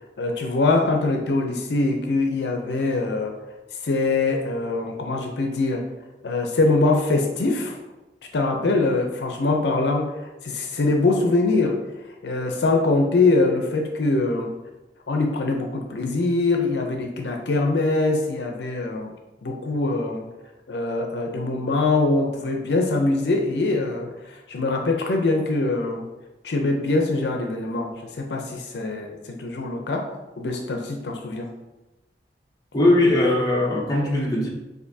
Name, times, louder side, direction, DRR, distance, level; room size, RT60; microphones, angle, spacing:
voice 1, 0.2-3.3 3.8-5.8 6.2-7.8 8.3-11.8 12.2-14.5 15.1-19.1 19.4-20.3 20.7-26.1 26.4-30.0 30.4-31.5, left 2 dB, 70° left, 2 dB, 0.5 m, -23 dB
voice 2, 32.7-34.5, left 1 dB, 20° left, -3 dB, 0.8 m, -19 dB
6.5 x 2.6 x 2.7 m, 1.0 s
head